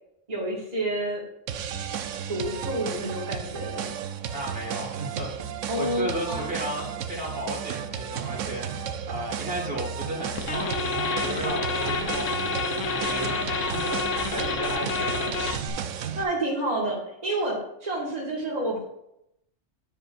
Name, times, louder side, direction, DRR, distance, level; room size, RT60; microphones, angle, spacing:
voice 1, 0.3-1.2 2.3-3.9 5.7-6.4 16.1-18.8, right 1 dB, 35° right, -4 dB, 2.0 m, -29 dB
sound 1, 1.5-16.2, right 8 dB, 85° right, 1.0 m, -34 dB
voice 2, 4.3-15.6, right 1 dB, 50° right, -3 dB, 2.2 m, -34 dB
sound 2, 10.4-15.7, left 4 dB, 90° left, 1.2 m, -28 dB
9.7 x 8.4 x 2.5 m, 0.81 s
omnidirectional pair, 1.3 m